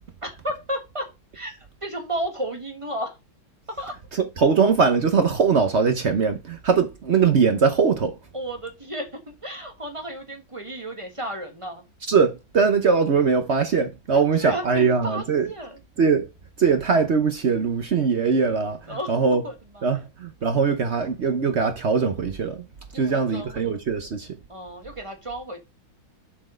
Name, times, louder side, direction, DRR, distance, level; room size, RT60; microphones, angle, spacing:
voice 1, 0.2-1.1 1.3-3.2 3.7-4.0 8.3-11.8 14.1-15.8 18.9-19.1 19.4-20.1 22.9-23.7 24.5-25.6, right 1 dB, 15° right, 1.4 m, -33 dB
voice 2, 4.4-8.1 12.1-15.4 16.0-16.3 16.6-18.8 19.1-19.4 19.8-22.6 22.9-24.3, right 5 dB, 55° right, 0.7 m, -21 dB
7.6 x 4.3 x 5.0 m
omnidirectional pair, 2.2 m